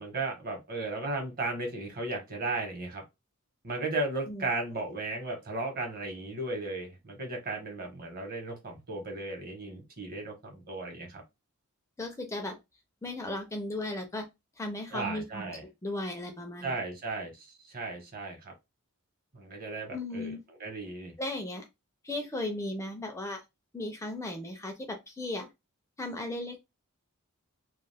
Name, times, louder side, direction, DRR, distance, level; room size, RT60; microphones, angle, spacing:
voice 1, 0.0-3.0 3.6-11.2 14.9-15.6 16.6-18.5 19.3-21.1, right 2 dB, 45° right, 0.9 m, -35 dB
voice 2, 12.0-12.6 13.0-14.2 14.6-15.4 15.8-16.7 19.9-20.4 21.2-21.7 22.0-23.4 23.7-25.5 26.0-26.6, left 1 dB, 15° left, 0.4 m, -36 dB
2.3 x 2.3 x 3.3 m
head